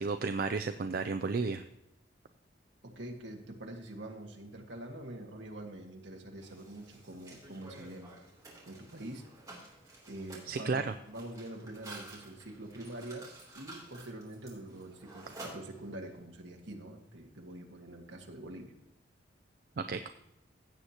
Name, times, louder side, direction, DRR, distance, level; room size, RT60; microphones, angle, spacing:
voice 1, 0.0-1.6 10.5-10.9 19.8-20.1, right 4 dB, 50° right, 8 dB, 0.4 m, -32 dB
voice 2, 2.8-8.2 8.7-9.3 10.1-13.3 13.6-18.8, right 1 dB, 65° right, 2 dB, 1.7 m, -45 dB
Mechanisms, 6.4-16.2, right 2 dB, 20° right, 3.0 m, -52 dB
16.0 x 7.9 x 2.9 m, 0.82 s
head